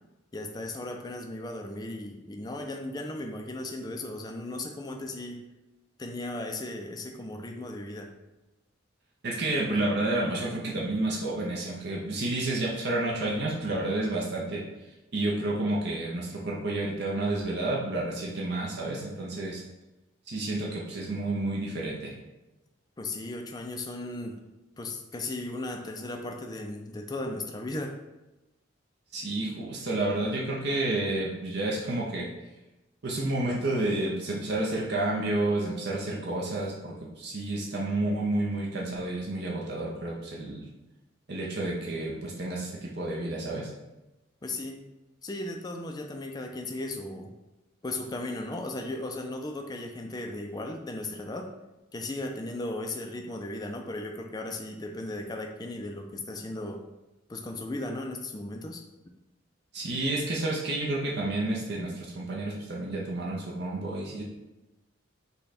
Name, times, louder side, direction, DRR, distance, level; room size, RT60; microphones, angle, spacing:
voice 1, 0.3-5.4 6.0-8.1 23.0-24.4 24.8-28.0 44.4-44.8 45.2-47.3 47.8-51.5 51.9-56.8 57.3-58.8, left 2 dB, 20° left, 4 dB, 0.4 m, -36 dB
voice 2, 9.2-14.6 15.1-19.6 20.3-22.1 29.1-32.3 33.0-40.6 41.3-43.7 59.7-64.2, right 2 dB, 55° right, -3 dB, 0.7 m, -30 dB
5.4 x 2.3 x 4.1 m, 1.0 s
head